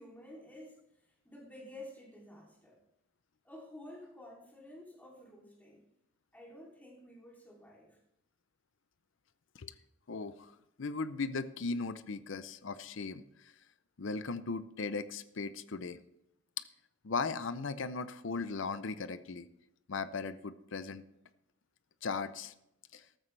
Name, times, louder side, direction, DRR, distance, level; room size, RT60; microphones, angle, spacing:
voice 1, 0.0-2.8 3.4-5.8 6.3-8.0, left 1 dB, 10° left, -3 dB, 3.0 m, -51 dB
voice 2, 10.1-10.5 10.8-13.5 14.0-16.0 17.0-19.5 19.9-21.0 22.0-22.5 22.9-23.0, left 4 dB, 65° left, 13 dB, 0.6 m, -37 dB
14.5 x 13.0 x 3.3 m, 0.83 s
head